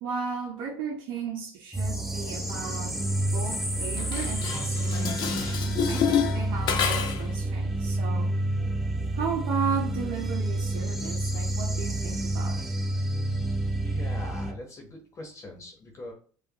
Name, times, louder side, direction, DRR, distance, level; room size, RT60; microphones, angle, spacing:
voice 1, 0.0-8.3 9.2-12.7, right 6 dB, 65° right, 0.7 m, -35 dB
sound 1, 1.7-14.5, right 1 dB, 5° right, 0.7 m, -29 dB
Dishes pots and pans, 4.0-7.3, left 7 dB, 55° left, 0.8 m, -28 dB
voice 2, 13.8-16.1, left 2 dB, 35° left, 1.2 m, -42 dB
4.8 x 2.4 x 3.0 m
supercardioid pair, 85°, 9 cm